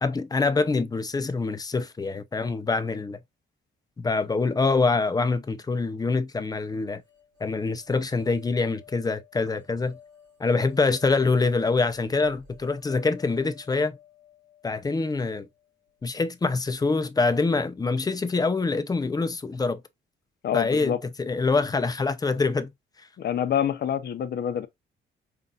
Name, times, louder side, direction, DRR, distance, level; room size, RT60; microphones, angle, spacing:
voice 1, 0.0-3.2 4.0-7.0 7.4-10.0 10.4-14.0 14.6-15.5 16.0-19.8 20.5-22.7, left 3 dB, 20° left, 0.5 m, -25 dB
sound 1, 7.0-16.2, left 8 dB, 65° right, 1.9 m, -54 dB
voice 2, 20.4-21.0 23.2-24.7, left 9 dB, 55° left, 0.7 m, -26 dB
5.4 x 2.5 x 2.4 m
cardioid pair, 130°, 20 cm